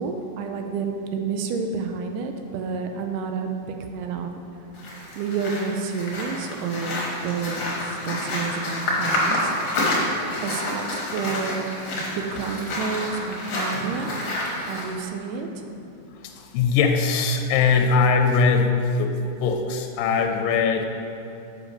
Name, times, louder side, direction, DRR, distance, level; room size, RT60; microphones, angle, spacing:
voice 1, 0.0-4.3 5.2-9.5 10.4-10.8 11.1-11.7 12.2-14.2 14.7-15.5, right 5 dB, 80° right, 5 dB, 2.1 m, -29 dB
sound 1, 4.7-14.8, left 1 dB, 55° left, 1.7 m, -28 dB
voice 2, 16.2-20.9, left 5 dB, 80° left, 4 dB, 2.2 m, -21 dB
7.5 x 4.9 x 5.0 m, 2.8 s
omnidirectional pair, 4.0 m